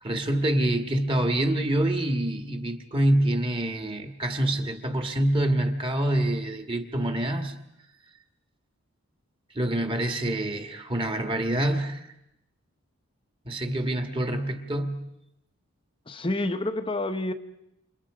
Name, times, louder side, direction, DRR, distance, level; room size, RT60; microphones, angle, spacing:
voice 1, 0.0-7.5 9.5-12.1 13.5-15.0, right 1 dB, 25° right, 1.9 m, -26 dB
voice 2, 16.1-17.3, left 2 dB, 25° left, 1.0 m, -28 dB
29.0 x 27.5 x 5.0 m
head